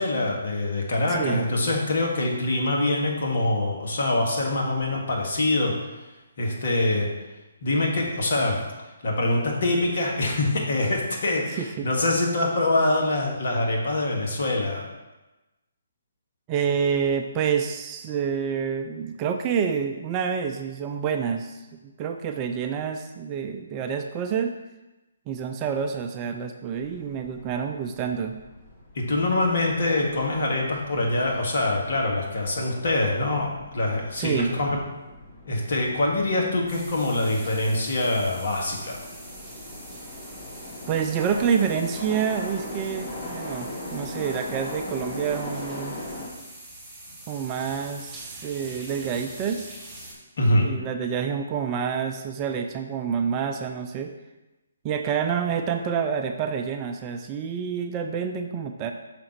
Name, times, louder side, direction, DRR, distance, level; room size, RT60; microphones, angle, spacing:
voice 1, 0.0-5.9 6.4-7.1 7.6-8.6 9.0-14.8 29.0-34.8 35.5-39.0 50.4-50.7, left 2 dB, 60° left, -1 dB, 1.7 m, -24 dB
voice 2, 1.1-1.4 11.5-11.9 16.5-24.5 25.3-28.4 34.2-34.6 40.9-46.0 47.3-49.7 50.6-54.1 54.8-58.9, right 7 dB, 25° right, 5 dB, 0.5 m, -28 dB
sound 1, 26.7-46.3, left 1 dB, 30° left, 2.4 m, -40 dB
sound 2, 36.7-50.1, right 1 dB, 10° right, 2.5 m, -44 dB
5.9 x 3.8 x 5.9 m, 1.1 s
figure-of-eight pair, 145°, 0 cm